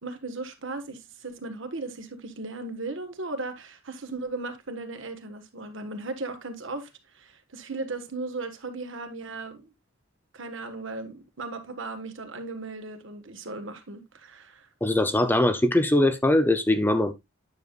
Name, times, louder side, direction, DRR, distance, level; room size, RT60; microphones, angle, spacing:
voice 1, 0.0-6.9 7.1-9.7 10.3-14.7, right 3 dB, 65° right, 1.5 m, -36 dB
voice 2, 14.8-17.1, left 1 dB, 10° left, 0.6 m, -21 dB
9.4 x 6.9 x 2.4 m
head